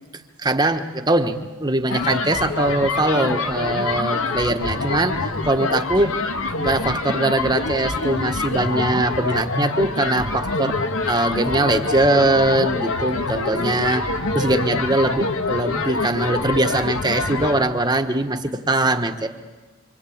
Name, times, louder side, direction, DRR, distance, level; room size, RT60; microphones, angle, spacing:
voice 1, 0.4-6.1 6.6-10.8 11.1-14.1 14.3-19.3, right 2 dB, 20° right, 7 dB, 1.3 m, -21 dB
sound 1, 1.9-17.6, left 3 dB, 75° left, 1.9 m, -25 dB
26.5 x 25.5 x 8.7 m, 1.3 s
head